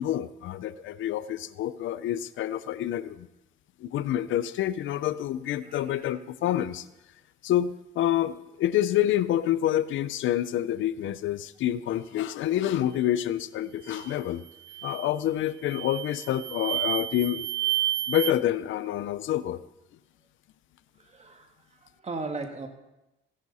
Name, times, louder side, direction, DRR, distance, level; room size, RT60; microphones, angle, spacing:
voice 1, 0.0-3.3 3.8-6.9 7.4-14.4 14.8-17.5 18.1-19.6, left 12 dB, 75° left, 15 dB, 0.6 m, -27 dB
voice 2, 5.6-6.2 14.7-14.9 18.0-18.1 21.0-22.7, right 3 dB, 35° right, 4 dB, 2.0 m, -39 dB
sound 1, 13.9-14.2 14.7-15.2 15.7-18.3, right 13 dB, 70° right, 0.5 m, -31 dB
14.5 x 11.0 x 4.1 m, 0.94 s
cardioid pair, 90°, 20 cm